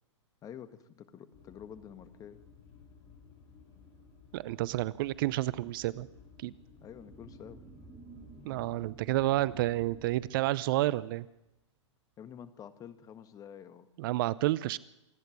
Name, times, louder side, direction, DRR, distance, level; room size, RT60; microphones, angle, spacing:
voice 1, 0.4-2.4 6.8-7.6 12.2-13.9, left 8 dB, 25° left, 13 dB, 1.6 m, -48 dB
sound 1, 1.3-10.3, left 5 dB, 45° left, 7.4 m, -56 dB
voice 2, 4.3-6.1 6.4-6.5 8.5-11.3 14.0-14.8, right 16 dB, 45° right, 20 dB, 0.7 m, -30 dB
sound 2, 6.5-11.5, right 4 dB, 15° right, 2.8 m, -54 dB
26.5 x 10.5 x 10.0 m, 0.94 s
hypercardioid pair, 120°, 16 cm